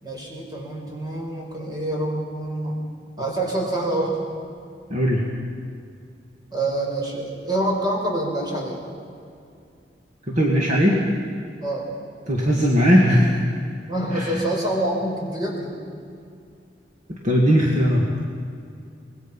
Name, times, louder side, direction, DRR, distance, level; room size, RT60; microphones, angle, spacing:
voice 1, 0.0-2.8 3.2-4.1 6.5-8.8 11.6-11.9 13.9-15.7, right 1 dB, 25° right, -1 dB, 4.7 m, -26 dB
voice 2, 4.9-5.3 10.3-11.0 12.3-13.4 14.1-14.3 17.1-18.3, equal, 45° right, -2 dB, 2.3 m, -19 dB
25.0 x 20.0 x 5.6 m, 2.4 s
head